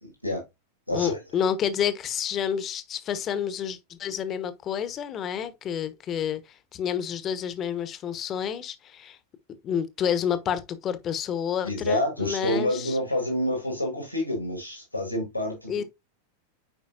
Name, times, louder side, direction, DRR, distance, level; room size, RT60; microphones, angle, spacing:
voice 1, 0.0-0.4 0.9-1.2 11.6-15.8, left 1 dB, 90° left, 2.5 m, -28 dB
voice 2, 0.9-9.2 9.6-13.0 15.7-15.8, left 8 dB, 30° left, 1.1 m, -29 dB
9.2 x 5.0 x 2.6 m
figure-of-eight pair, 90°, 0 cm